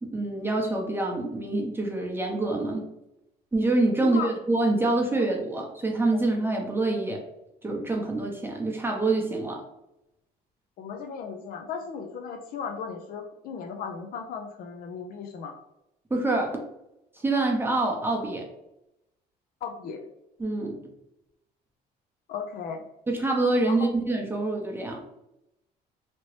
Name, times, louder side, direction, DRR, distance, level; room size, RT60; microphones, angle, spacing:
voice 1, 0.0-2.9 3.5-7.2 7.6-9.6 16.1-16.6 17.2-18.4 20.4-20.8 23.1-25.0, right 2 dB, 15° right, 0 dB, 0.7 m, -26 dB
voice 2, 10.8-15.5 19.6-20.1 22.3-22.8 23.6-23.8, left 6 dB, 60° left, 5 dB, 0.4 m, -36 dB
2.9 x 2.7 x 3.0 m, 0.86 s
cardioid pair, 110°, 17 cm